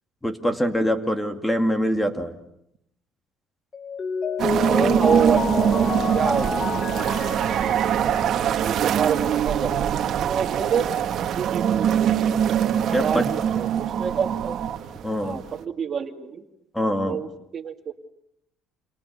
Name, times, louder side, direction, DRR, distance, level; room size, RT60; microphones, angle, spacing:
voice 1, 0.2-2.4 4.8-4.9 12.9-13.3 15.0-15.4 16.7-17.2, equal, 10° left, 7 dB, 2.4 m, -24 dB
Mallet percussion, 3.7-8.7, left 4 dB, 30° left, 1.2 m, -29 dB
sound 1, 4.4-15.6, right 9 dB, 55° right, 1.9 m, -23 dB
voice 2, 4.7-9.7 10.1-12.3 13.0-14.6 15.2-16.4 17.1-17.3 17.5-17.9, right 7 dB, 40° right, 5 dB, 2.4 m, -28 dB
29.5 x 27.5 x 6.8 m, 0.80 s
cardioid pair, 105°, 0 cm